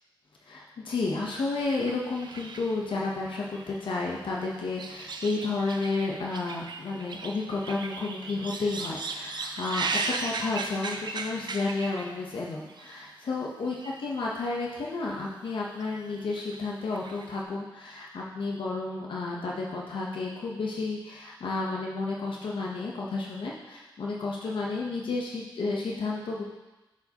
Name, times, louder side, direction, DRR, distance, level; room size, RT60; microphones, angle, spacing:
voice 1, 0.5-26.4, left 3 dB, 75° left, -3 dB, 0.9 m, -32 dB
sound 1, 1.6-4.0 4.4-12.4 12.7-13.0 13.7-14.2 14.4-14.5 15.5-17.4, right 3 dB, 60° right, 0.5 m, -37 dB
7.8 x 4.8 x 2.9 m, 1.1 s
cardioid pair, 55°, 9 cm